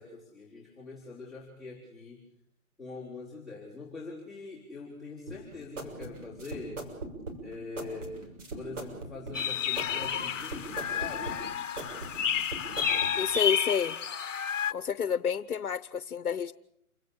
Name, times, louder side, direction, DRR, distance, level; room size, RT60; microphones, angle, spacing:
voice 1, 0.0-2.2 2.8-6.8 7.4-11.4, left 3 dB, ahead, -5 dB, 4.3 m, -43 dB
sound 1, 5.3-13.1, right 2 dB, 60° right, 6.8 m, -41 dB
sound 2, 9.3-14.7, left 8 dB, 60° left, 1.1 m, -31 dB
voice 2, 13.2-14.0 14.7-16.5, left 7 dB, 80° left, 15 dB, 0.9 m, -29 dB
28.5 x 17.5 x 8.5 m, 0.75 s
hypercardioid pair, 155°, 43 cm